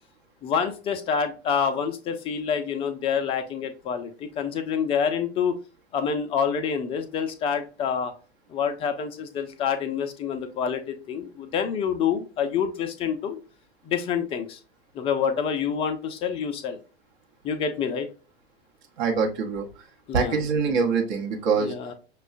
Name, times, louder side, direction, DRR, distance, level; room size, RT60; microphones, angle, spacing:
voice 1, 0.4-5.6 5.9-8.1 8.5-13.4 13.8-14.6 14.9-16.8 17.4-18.1 20.1-20.4 21.6-21.9, left 7 dB, 20° left, 7 dB, 0.4 m, -27 dB
voice 2, 19.0-19.7 20.1-21.7, right 5 dB, 45° right, 1 dB, 0.9 m, -24 dB
6.0 x 2.3 x 2.5 m, 0.35 s
figure-of-eight pair, 95°, 32 cm